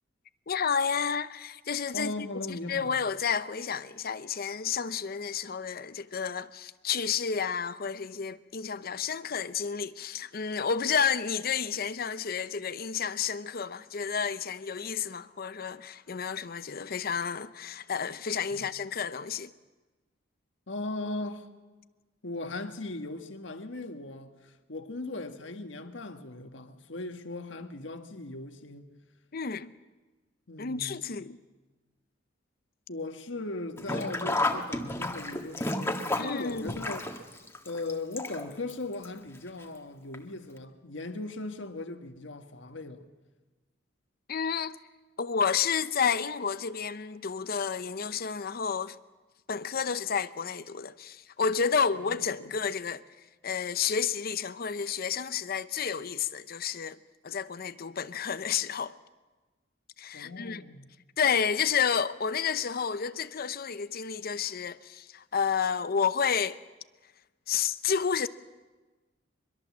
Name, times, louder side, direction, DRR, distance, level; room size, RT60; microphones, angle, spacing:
voice 1, 0.5-19.5 29.3-29.7 30.6-31.4 36.2-36.8 44.3-44.8 45.2-49.0 49.5-53.0 53.4-57.0 57.2-58.9 60.0-60.6 61.2-66.6 67.5-68.3, left 6 dB, 55° left, 0.7 m, -30 dB
voice 2, 1.9-3.0 18.5-18.7 20.7-21.5 22.2-28.9 30.5-31.1 32.9-37.2 37.6-43.0 51.9-52.0 52.4-52.5 60.1-60.9, left 2 dB, 70° left, 1.6 m, -38 dB
Sink (filling or washing), 33.8-38.7 39.0-39.1 40.1-40.2 40.6-40.7, left 2 dB, 15° left, 1.7 m, -31 dB
24.0 x 22.5 x 7.4 m
head